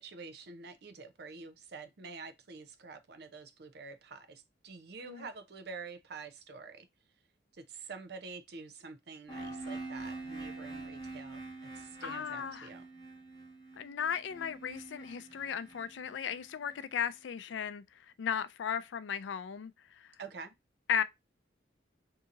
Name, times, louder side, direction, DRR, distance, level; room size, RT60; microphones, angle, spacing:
voice 1, 0.0-6.9 7.6-11.4 11.7-12.9 20.2-20.6, right 4 dB, 60° right, 0.5 m, -47 dB
sound 1, 9.3-17.1, right 3 dB, 20° left, 1.1 m, -45 dB
voice 2, 12.0-12.7 13.8-17.8 18.2-19.7 20.9-21.0, left 8 dB, 80° left, 0.4 m, -35 dB
2.7 x 2.7 x 3.6 m
head